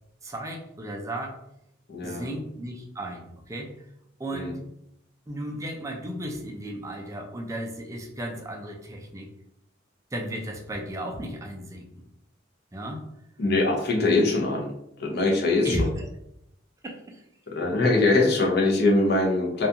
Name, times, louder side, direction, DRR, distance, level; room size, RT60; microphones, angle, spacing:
voice 1, 0.2-1.4 2.0-3.7 4.2-4.6 5.3-9.3 10.1-12.1 12.7-13.0 15.6-16.1 16.8-17.2, right 1 dB, 15° right, 2 dB, 0.3 m, -34 dB
voice 2, 1.9-2.3 4.3-4.5 13.4-14.7 15.0-15.8 17.5-19.7, left 2 dB, 55° left, 0 dB, 0.6 m, -22 dB
2.4 x 2.2 x 2.7 m, 0.79 s
head